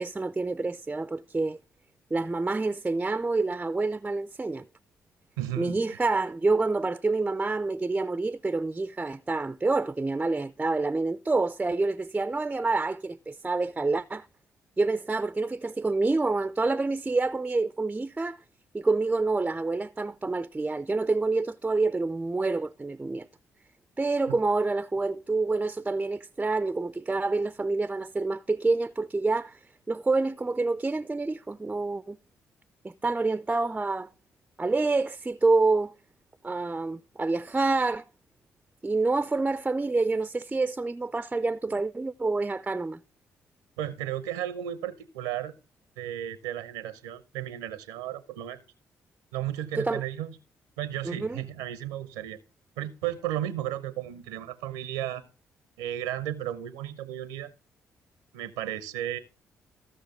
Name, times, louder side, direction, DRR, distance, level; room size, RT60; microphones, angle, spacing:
voice 1, 0.0-1.6 2.1-4.7 5.6-14.3 14.8-18.4 18.7-23.3 24.0-29.6 29.9-32.2 32.8-34.1 34.6-35.9 36.4-38.0 38.8-43.0 49.8-50.0 51.1-51.4, right 3 dB, 20° right, 0.4 m, -27 dB
voice 2, 5.4-6.0 24.3-24.4 43.8-45.5 46.0-48.6 49.3-50.4 50.8-52.4 52.8-55.2 55.8-57.5 58.3-59.2, right 12 dB, 85° right, 0.6 m, -34 dB
15.5 x 6.3 x 3.6 m
hypercardioid pair, 45°, 7 cm